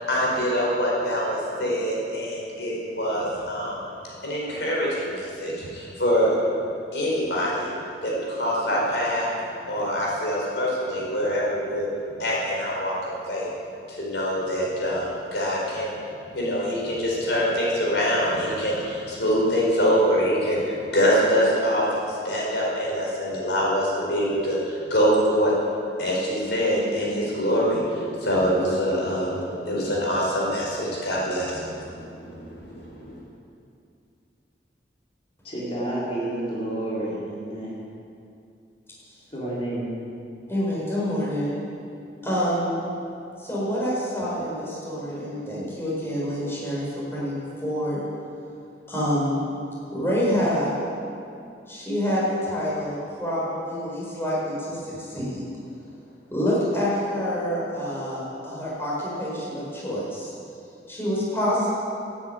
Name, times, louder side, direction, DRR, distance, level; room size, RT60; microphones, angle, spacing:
voice 1, 0.0-3.9 4.2-6.3 6.9-7.7 8.0-9.3 9.7-11.9 12.2-13.5 13.9-16.0 16.3-25.5 26.0-33.2, equal, 85° left, -4 dB, 4.6 m, -25 dB
voice 2, 35.4-37.8 39.3-40.0, right 1 dB, 35° left, -7 dB, 3.8 m, -30 dB
voice 3, 40.5-41.6 42.2-42.8 43.4-48.0 48.9-49.4 49.9-50.7 51.7-55.4 56.3-60.3 60.9-61.7, equal, 15° left, -6 dB, 4.4 m, -27 dB
11.5 x 10.5 x 8.8 m, 2.5 s
head